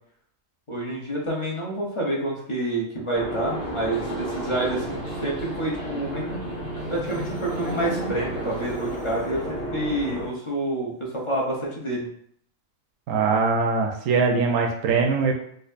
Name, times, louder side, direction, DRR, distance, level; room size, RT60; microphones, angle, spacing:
voice 1, 0.7-6.4 6.9-12.1, right 1 dB, 30° left, -3 dB, 0.7 m, -28 dB
sound 1, 3.1-10.3, right 1 dB, 50° left, 1.4 m, -32 dB
Marimba xylophone, 6.1-9.4, right 1 dB, 80° left, 1.4 m, -38 dB
voice 2, 13.1-15.3, right 4 dB, 80° right, 1 dB, 1.0 m, -22 dB
4.4 x 2.5 x 2.5 m, 0.66 s
omnidirectional pair, 1.4 m